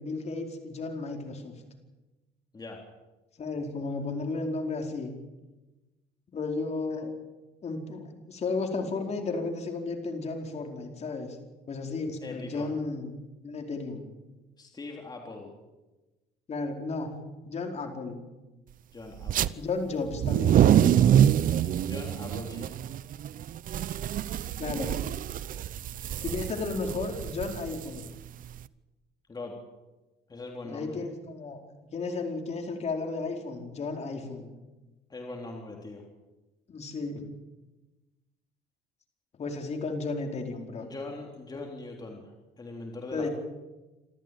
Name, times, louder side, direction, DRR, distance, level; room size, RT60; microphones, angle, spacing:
voice 1, 0.0-1.5 3.4-5.1 6.3-7.1 7.6-11.4 11.7-13.1 13.4-14.1 16.5-17.1 17.4-18.2 19.6-21.1 24.6-24.9 26.2-28.1 30.6-31.6 31.9-34.5 36.7-37.3 39.3-40.9 43.1-43.3, left 3 dB, 40° left, 3 dB, 4.8 m, -33 dB
voice 2, 12.2-12.7 14.6-15.5 18.9-19.6 21.8-22.7 25.9-26.1 29.3-29.6 30.3-31.0 35.1-36.0 40.8-42.2 42.6-43.3, left 2 dB, 25° left, 1 dB, 3.6 m, -41 dB
sound 1, 19.2-19.5 20.1-28.6, right 10 dB, 55° right, 0.8 m, -25 dB
26.5 x 14.0 x 9.2 m, 1.1 s
cardioid pair, 110°, 17 cm